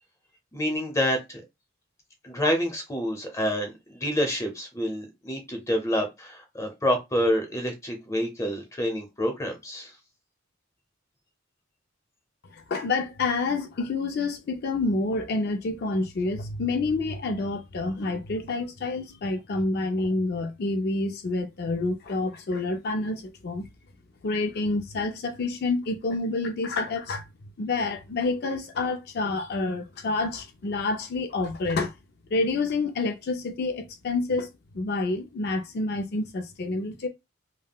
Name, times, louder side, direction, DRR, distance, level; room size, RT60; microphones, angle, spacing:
voice 1, 0.5-1.4 2.2-9.9, equal, 15° left, 0.7 m, -28 dB
voice 2, 12.5-23.7 24.2-27.2 27.6-31.9 32.3-34.5 34.7-37.1, left 3 dB, 50° left, 0.4 m, -28 dB
3.4 x 2.1 x 2.2 m
head